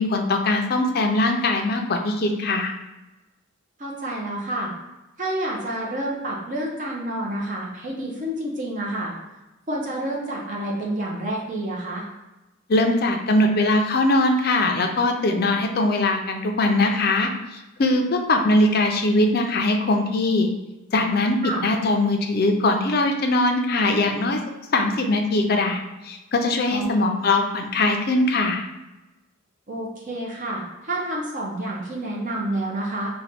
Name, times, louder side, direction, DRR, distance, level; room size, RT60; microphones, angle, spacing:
voice 1, 0.0-2.7 12.7-20.5 20.9-24.4 24.7-28.7, left 2 dB, 45° left, 4 dB, 0.5 m, -21 dB
voice 2, 3.8-4.7 5.2-9.1 9.7-12.0 21.4-21.6 26.7-26.9 29.7-33.1, right 1 dB, 40° right, -3 dB, 0.7 m, -29 dB
4.3 x 2.3 x 4.1 m, 1.0 s
head